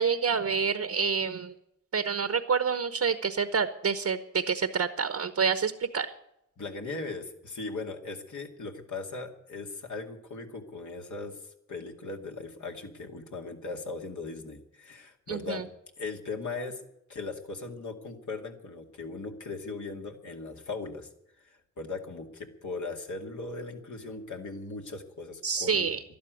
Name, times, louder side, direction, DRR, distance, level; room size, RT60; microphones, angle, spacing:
voice 1, 0.0-1.5 1.9-6.1 15.3-15.6 25.4-26.0, right 6 dB, 55° right, 11 dB, 1.1 m, -28 dB
voice 2, 6.6-11.4 11.7-15.6 16.0-16.8 17.1-21.1 21.4-25.9, left 3 dB, 65° left, 2 dB, 2.4 m, -38 dB
12.0 x 11.5 x 9.3 m, 0.80 s
cardioid pair, 55°, 31 cm